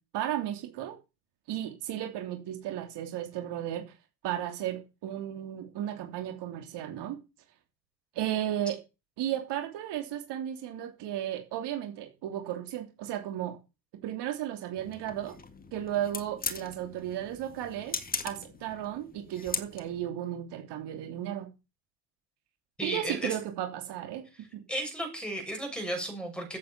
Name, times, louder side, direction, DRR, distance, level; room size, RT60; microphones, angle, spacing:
voice 1, 0.1-1.0 1.5-3.8 4.2-7.2 8.1-8.8 9.2-13.6 14.0-15.4 15.7-18.0 18.2-21.5 22.8-24.2, right 11 dB, 55° right, 5 dB, 3.1 m, -34 dB
sound 1, 14.8-20.1, left 4 dB, 20° left, 1.9 m, -39 dB
voice 2, 22.8-23.4 24.3-26.6, right 1 dB, ahead, 3 dB, 6.9 m, -34 dB
15.0 x 8.5 x 6.0 m, 0.29 s
supercardioid pair, 115°, 48 cm